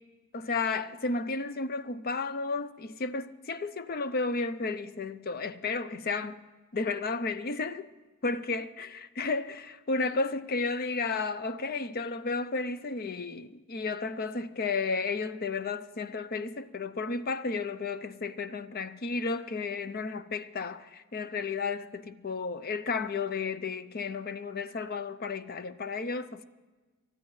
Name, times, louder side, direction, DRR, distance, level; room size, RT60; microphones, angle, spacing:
voice 1, 0.3-6.5 6.7-7.9 8.2-8.9 9.2-26.4, left 4 dB, 45° left, 0.6 m, -33 dB
28.5 x 13.5 x 3.2 m
head